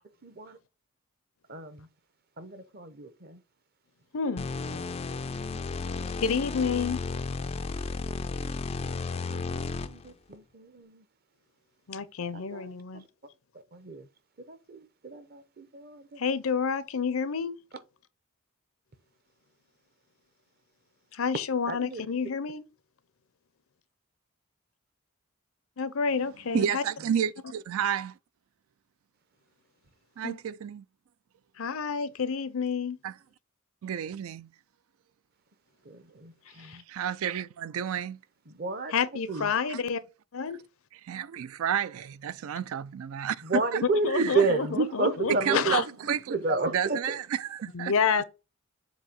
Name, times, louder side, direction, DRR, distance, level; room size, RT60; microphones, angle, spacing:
voice 1, 0.2-0.6 1.5-1.8 2.4-3.4 5.5-6.1 8.8-9.4 9.8-11.0 12.5-12.7 13.7-14.0 14.5-16.2 21.7-22.0 36.2-36.8 38.6-38.9 39.3-39.5 43.4-45.7 46.3-47.0, right 3 dB, 45° right, 0.7 m, -31 dB
voice 2, 4.1-4.5 6.2-7.0 11.9-13.0 16.2-17.6 21.1-22.6 25.8-26.8 30.2-30.4 31.6-33.0 36.6-36.8 38.9-40.0 40.3-40.6 44.0-45.9 47.7-48.2, left 6 dB, 70° left, 0.6 m, -29 dB
sound 1, 4.4-10.1, left 4 dB, 25° left, 0.3 m, -33 dB
voice 3, 26.5-28.1 30.2-30.8 33.0-33.1 33.8-34.5 36.9-38.2 39.7-39.8 41.0-43.8 44.1-44.5 45.3-47.9, right 8 dB, 70° right, 0.4 m, -31 dB
7.3 x 2.7 x 5.2 m
head